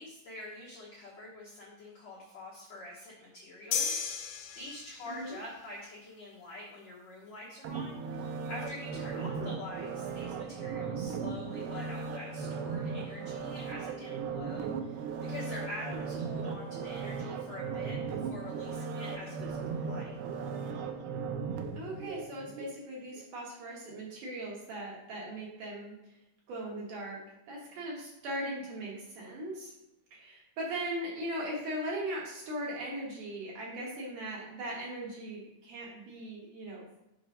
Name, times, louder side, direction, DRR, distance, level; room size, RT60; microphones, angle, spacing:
voice 1, 0.0-20.1, left 2 dB, 65° left, -5 dB, 1.7 m, -46 dB
sound 1, 3.7-5.3, left 7 dB, 85° left, 2.9 m, -34 dB
voice 2, 5.0-5.4 9.1-9.5 21.7-26.2 26.5-29.7 30.1-36.9, right 1 dB, 60° right, -4 dB, 2.4 m, -39 dB
sound 2, 7.6-22.7 23.1-23.2, right 5 dB, 90° right, 2.1 m, -37 dB
6.7 x 5.2 x 5.0 m, 0.89 s
omnidirectional pair, 5.0 m